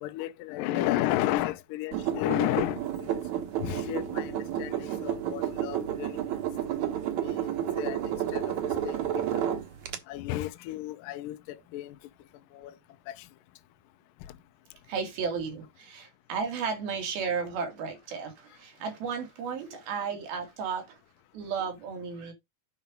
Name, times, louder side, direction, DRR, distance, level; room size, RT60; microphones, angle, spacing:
voice 1, 0.0-3.2 3.6-6.2 7.2-7.3 7.8-8.5 8.8-9.0 9.3-9.6 10.1-11.9 12.5-12.7 13.1-13.2, left 14 dB, 75° left, 2.2 m, -32 dB
sound 1, 1.9-10.0, right 10 dB, 60° right, 2.4 m, -31 dB
voice 2, 14.9-21.0 21.3-22.3, right 6 dB, 85° right, 4.4 m, -34 dB
9.2 x 5.3 x 5.2 m
omnidirectional pair, 4.2 m